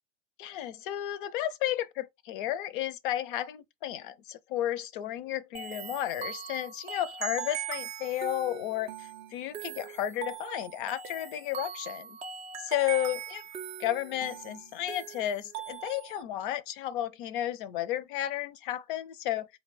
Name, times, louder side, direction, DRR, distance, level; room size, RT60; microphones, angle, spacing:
voice 1, 0.4-12.2 12.6-13.4 13.8-19.5, left 12 dB, 45° left, 0.5 m, -33 dB
sound 1, 5.5-16.2, right 8 dB, 15° right, 0.3 m, -40 dB
3.9 x 2.3 x 4.0 m
figure-of-eight pair, 90°, 37 cm